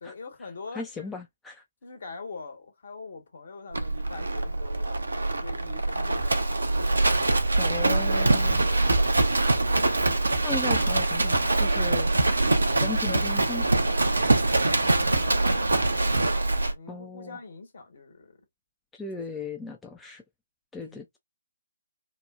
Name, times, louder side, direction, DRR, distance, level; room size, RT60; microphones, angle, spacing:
voice 1, 0.0-1.2 1.8-6.7 7.6-9.0 12.7-13.2 14.5-16.1 16.3-18.4 19.2-19.4 20.8-21.1, left 4 dB, 55° left, 1.1 m, -44 dB
voice 2, 0.7-1.6 7.6-8.7 10.4-12.1 12.8-13.7 16.9-17.4 18.9-20.2 20.7-21.2, left 3 dB, 5° left, 0.3 m, -37 dB
Livestock farm animals working animals, 3.7-16.8, right 2 dB, 70° right, 0.5 m, -24 dB
2.8 x 2.1 x 2.3 m
figure-of-eight pair, 135°, 0 cm